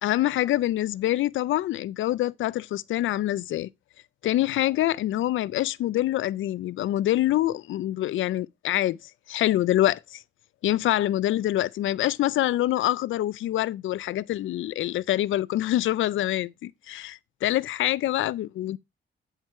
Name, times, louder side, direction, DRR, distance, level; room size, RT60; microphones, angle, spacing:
voice 1, 0.0-3.7 4.2-9.0 9.3-10.2 10.6-18.8, left 14 dB, 80° left, 0.4 m, -25 dB
9.0 x 4.6 x 4.4 m
wide cardioid pair, 155°, 20 cm